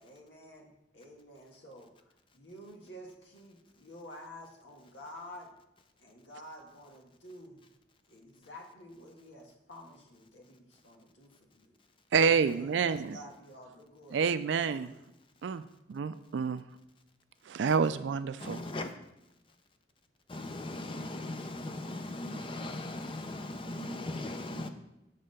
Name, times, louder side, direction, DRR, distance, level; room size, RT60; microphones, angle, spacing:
voice 1, 0.0-0.7 0.9-5.5 6.0-7.6 8.1-11.7 12.2-15.0, equal, 85° left, 1.7 m, -51 dB
voice 2, 12.1-13.2 14.1-14.9 15.4-15.6 15.9-16.6 17.5-18.6, right 6 dB, 75° right, 0.4 m, -28 dB
voice 3, 18.4-18.9 20.3-24.7, left 2 dB, 30° left, 0.6 m, -38 dB
7.6 x 3.7 x 6.6 m
head